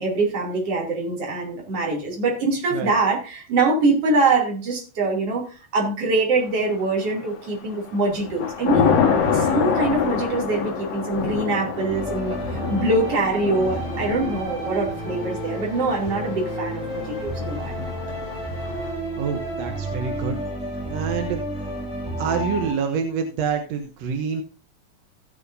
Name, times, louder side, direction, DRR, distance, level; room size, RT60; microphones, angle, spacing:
voice 1, 0.0-5.4 5.7-8.9 9.3-17.9, right 3 dB, 45° right, -1 dB, 3.6 m, -23 dB
Thunder / Rain, 6.8-7.4 7.8-18.9, left 6 dB, 80° left, 3.3 m, -27 dB
sound 1, 11.9-22.7, right 1 dB, ahead, 2.5 m, -31 dB
voice 2, 19.2-20.4 20.9-21.7 22.2-24.4, right 6 dB, 65° right, 4 dB, 1.7 m, -27 dB
15.5 x 8.4 x 2.7 m, 0.33 s
omnidirectional pair, 3.9 m